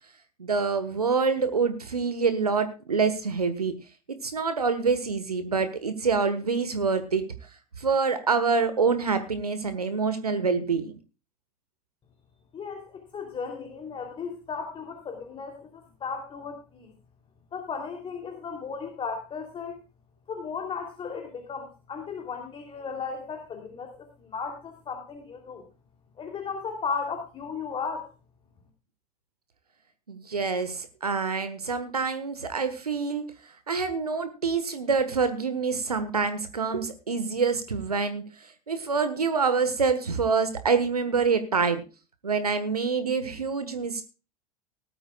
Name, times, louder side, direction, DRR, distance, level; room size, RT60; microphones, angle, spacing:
voice 1, 0.4-3.7 4.2-7.2 7.8-11.0 30.1-33.2 33.7-41.8 42.2-44.0, right 5 dB, 85° right, 11 dB, 1.4 m, -26 dB
voice 2, 12.5-16.9 17.5-19.8 20.3-25.6 26.2-28.1, left 5 dB, 30° left, 4 dB, 3.0 m, -35 dB
19.0 x 12.5 x 2.3 m, 0.32 s
figure-of-eight pair, 80°, 19 cm